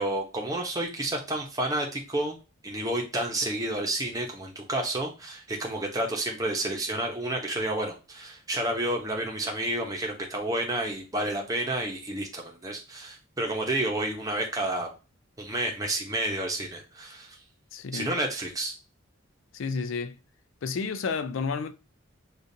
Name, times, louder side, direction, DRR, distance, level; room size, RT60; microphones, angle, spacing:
voice 1, 0.0-2.4 2.6-14.9 15.4-17.4 17.9-18.7, right 1 dB, 15° right, 0.8 m, -30 dB
voice 2, 17.7-18.2 19.5-20.2 20.6-21.7, left 5 dB, 70° left, 0.4 m, -31 dB
6.6 x 2.5 x 2.7 m
head